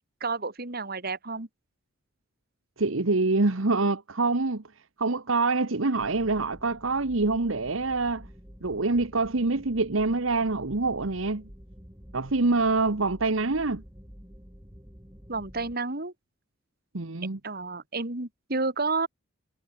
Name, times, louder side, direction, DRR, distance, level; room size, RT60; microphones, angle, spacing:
voice 1, 0.2-1.5 15.3-16.1 17.4-19.1, right 3 dB, 50° right, 2.8 m, -30 dB
voice 2, 2.8-4.6 5.0-8.3 8.6-11.5 12.1-13.8 16.9-17.4, right 3 dB, 80° right, 1.3 m, -25 dB
sound 1, 6.0-15.7, equal, 15° right, 5.9 m, -49 dB
head